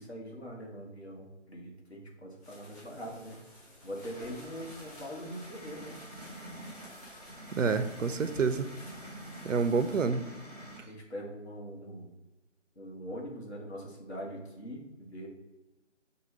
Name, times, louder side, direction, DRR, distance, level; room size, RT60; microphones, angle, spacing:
voice 1, 0.0-3.4 3.8-6.0 10.9-12.1 12.8-15.3, equal, 60° left, -2 dB, 1.3 m, -42 dB
sound 1, 2.3-10.0, left 1 dB, 15° left, 1.1 m, -53 dB
sound 2, 4.1-10.8, right 1 dB, 30° left, 0.8 m, -47 dB
voice 2, 7.5-8.7 9.4-10.2, right 5 dB, 85° right, 10 dB, 0.5 m, -28 dB
6.0 x 2.3 x 3.2 m, 1.1 s
figure-of-eight pair, 170°, 37 cm